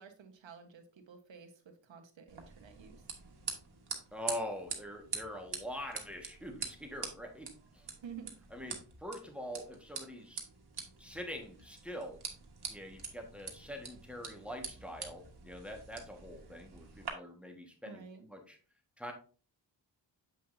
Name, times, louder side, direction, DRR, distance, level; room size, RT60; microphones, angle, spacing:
voice 1, 0.0-3.0 8.0-8.4 17.9-18.2, right 6 dB, 80° right, 6 dB, 1.3 m, -51 dB
sound 1, 2.3-17.1, right 5 dB, 55° right, 1.7 m, -45 dB
voice 2, 4.1-7.9 8.5-10.4 11.0-12.2 12.7-18.6 19.0-19.1, equal, 5° right, 3 dB, 1.5 m, -44 dB
7.4 x 5.7 x 2.6 m, 0.38 s
cardioid pair, 70°, 45 cm